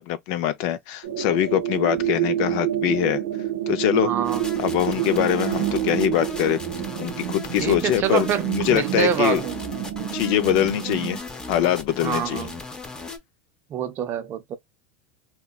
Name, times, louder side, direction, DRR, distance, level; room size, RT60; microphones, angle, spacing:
voice 1, 0.0-3.2 3.7-4.1 4.6-6.6 7.0-9.4 10.1-11.2 11.5-12.4, left 11 dB, 65° left, 0.4 m, -23 dB
sound 1, 1.0-11.2, right 12 dB, 85° right, 0.6 m, -28 dB
voice 2, 4.0-4.4 7.6-9.6 12.0-12.6 13.7-14.6, right 8 dB, 40° right, 0.5 m, -26 dB
sound 2, 4.2-13.2, left 2 dB, 15° left, 0.6 m, -37 dB
2.7 x 2.1 x 2.3 m
supercardioid pair, 105°, 6 cm